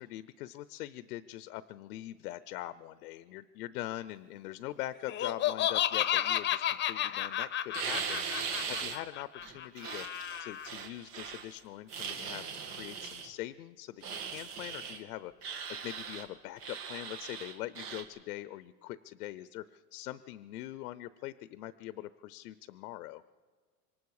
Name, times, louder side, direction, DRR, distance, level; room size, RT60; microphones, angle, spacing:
voice 1, 0.0-23.2, left 15 dB, 90° left, 15 dB, 0.7 m, -43 dB
Laughter, 5.1-10.7, left 11 dB, 25° left, 0.7 m, -32 dB
sound 1, 7.7-9.0 9.4-11.5 11.9-13.3 14.0-15.0 15.4-16.3 16.6-18.0, right 6 dB, 90° right, 2.7 m, -39 dB
26.0 x 23.5 x 4.8 m, 1.5 s
supercardioid pair, 130°, 45 cm